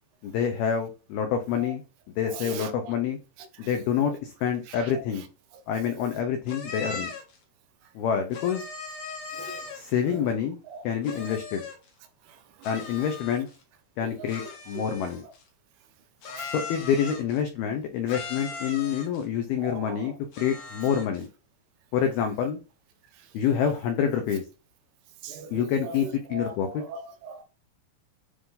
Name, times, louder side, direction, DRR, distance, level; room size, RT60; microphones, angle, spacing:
voice 1, 0.2-1.8 2.2-3.2 3.6-5.3 5.7-7.1 8.0-8.6 9.7-10.6 10.8-11.6 12.6-13.5 14.0-15.2 16.5-21.3 21.9-22.6 23.3-24.4 25.5-26.8, left 8 dB, 90° left, 2.2 m, -27 dB
voice 2, 2.3-2.9 3.6-3.8 4.7-4.9 5.9-6.0 9.4-9.7 10.1-10.2 10.7-10.8 14.0-14.3 14.8-14.9 16.4-16.5 19.6-20.1 25.2-27.4, right 4 dB, 85° right, 3.7 m, -39 dB
sound 1, 6.5-7.4 8.3-10.0 11.0-11.9 12.6-13.6 14.3-15.4 16.2-17.4 18.1-19.2 20.3-21.2, left 4 dB, 65° left, 1.7 m, -39 dB
10.0 x 3.8 x 2.7 m
omnidirectional pair, 5.6 m